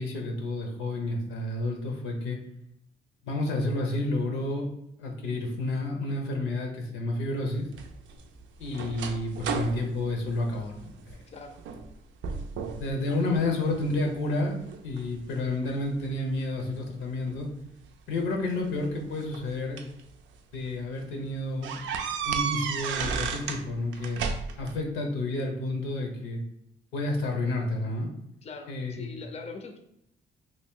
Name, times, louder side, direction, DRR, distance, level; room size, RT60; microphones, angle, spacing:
voice 1, 0.0-2.4 3.2-4.7 5.0-7.7 8.6-11.2 12.8-17.5 18.1-19.8 20.5-21.8 22.2-24.2 24.6-26.4 26.9-28.1 28.7-29.2, left 2 dB, 90° left, 2 dB, 0.8 m, -30 dB
sound 1, 7.7-11.2 11.6-11.9 12.2-12.9 13.3-14.1 14.7-16.1 17.3-17.4 18.6-20.0 20.5-20.7 21.0-21.1 21.6-23.6 23.9-24.8, right 6 dB, 75° right, 0.4 m, -33 dB
voice 2, 11.3-11.6 13.0-13.3 28.4-29.8, left 3 dB, 35° left, 5 dB, 0.5 m, -42 dB
3.0 x 2.5 x 3.6 m, 0.77 s
cardioid pair, 90°, 20 cm